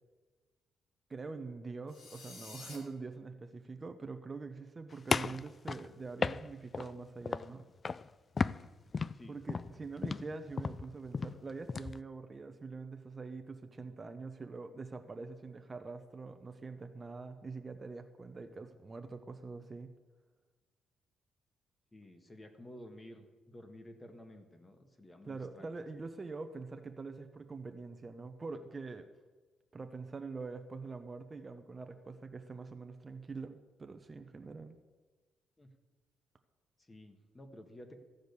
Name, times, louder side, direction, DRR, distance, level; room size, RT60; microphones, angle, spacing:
voice 1, 1.1-7.6 9.3-19.9 25.2-29.1 29.7-34.8, right 4 dB, 30° right, 7 dB, 0.8 m, -44 dB
sound 1, 1.9-2.8, left 3 dB, 70° left, 2.5 m, -50 dB
sound 2, 5.1-6.9 7.2-7.6 7.8-8.1 8.4-12.0, left 5 dB, 35° left, 0.3 m, -34 dB
voice 2, 21.9-25.7 35.6-35.7 36.9-38.0, left 1 dB, 20° left, 6 dB, 1.6 m, -52 dB
14.5 x 5.1 x 8.1 m, 1.3 s
cardioid pair, 90°, 0 cm